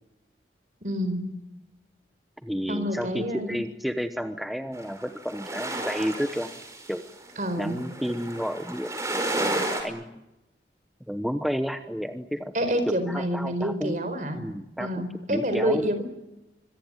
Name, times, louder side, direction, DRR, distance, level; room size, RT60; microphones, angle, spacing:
voice 1, 0.8-1.2 2.7-3.6 7.4-7.8 12.5-14.4 14.8-16.1, equal, 45° right, 9 dB, 4.5 m, -28 dB
voice 2, 2.4-6.5 6.9-7.1 7.6-10.2 11.1-12.5 13.1-14.0 14.3-15.0 15.3-15.8, equal, ahead, 7 dB, 0.9 m, -31 dB
sound 1, 4.7-9.8, right 2 dB, 15° right, 5.2 m, -32 dB
25.5 x 23.0 x 9.0 m, 0.94 s
head